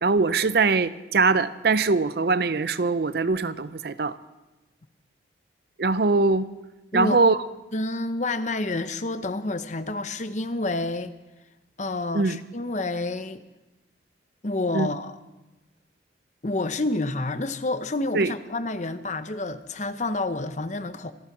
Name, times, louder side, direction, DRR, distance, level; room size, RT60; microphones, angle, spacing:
voice 1, 0.0-4.2 5.8-6.5 6.9-7.4 12.1-12.4 14.7-14.9 18.1-18.3, right 3 dB, 55° right, 0.6 m, -22 dB
voice 2, 7.7-11.1 11.8-13.4 14.4-15.2 16.4-21.1, left 2 dB, 40° left, 0.8 m, -29 dB
25.5 x 8.7 x 6.0 m
head